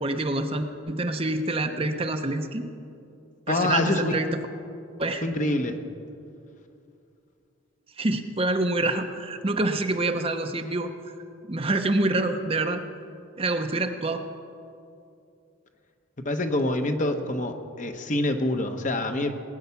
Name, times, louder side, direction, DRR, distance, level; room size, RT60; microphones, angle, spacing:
voice 1, 0.0-2.7 3.5-4.4 5.0-5.2 8.0-10.9 11.5-12.8 13.4-14.2, right 2 dB, 30° right, 6 dB, 0.8 m, -26 dB
voice 2, 3.5-4.2 5.2-5.8 16.2-19.3, left 1 dB, 40° left, 6 dB, 1.0 m, -26 dB
19.5 x 9.4 x 7.0 m, 2.5 s
head